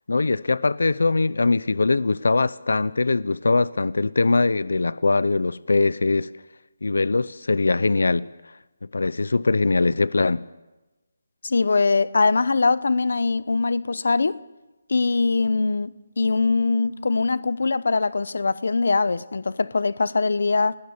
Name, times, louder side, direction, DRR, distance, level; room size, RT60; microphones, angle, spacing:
voice 1, 0.1-6.3 6.8-8.3 8.9-10.5, left 3 dB, 85° left, 0.7 m, -21 dB
voice 2, 11.4-14.4 14.9-15.9 16.2-20.8, left 3 dB, 55° left, 0.9 m, -22 dB
29.5 x 19.0 x 7.2 m
hypercardioid pair, 180°, 0 cm